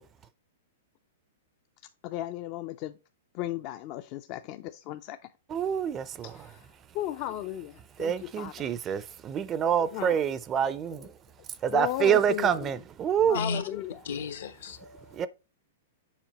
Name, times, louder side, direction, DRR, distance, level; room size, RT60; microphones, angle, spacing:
voice 1, 2.0-3.0 3.3-5.2 6.2-6.7 6.9-8.7 9.9-10.2 11.7-12.7 13.2-14.0, left 14 dB, 40° left, 0.4 m, -35 dB
voice 2, 5.5-6.5 8.0-11.1 11.6-13.4 15.1-15.3, right 8 dB, 20° right, 0.4 m, -27 dB
voice 3, 14.0-15.1, left 4 dB, 80° left, 1.1 m, -34 dB
7.3 x 4.9 x 3.0 m
hypercardioid pair, 150°, 0 cm